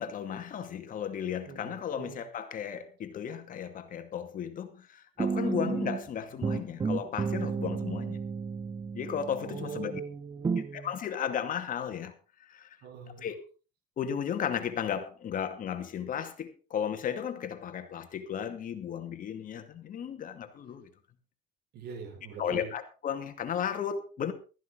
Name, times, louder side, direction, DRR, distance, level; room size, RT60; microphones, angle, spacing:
voice 1, 0.0-8.2 8.9-10.0 10.6-12.1 12.5-12.8 13.2-13.4 14.0-20.9 22.4-24.3, left 8 dB, 55° left, 2.4 m, -35 dB
voice 2, 1.5-2.3 5.4-5.8 9.4-10.9 12.8-13.3 21.7-22.7, right 6 dB, 75° right, 5.7 m, -42 dB
sound 1, 5.2-6.1 6.4-10.0 10.4-10.7, right 5 dB, 25° right, 0.8 m, -32 dB
15.0 x 14.0 x 4.0 m
cardioid pair, 110°, 17 cm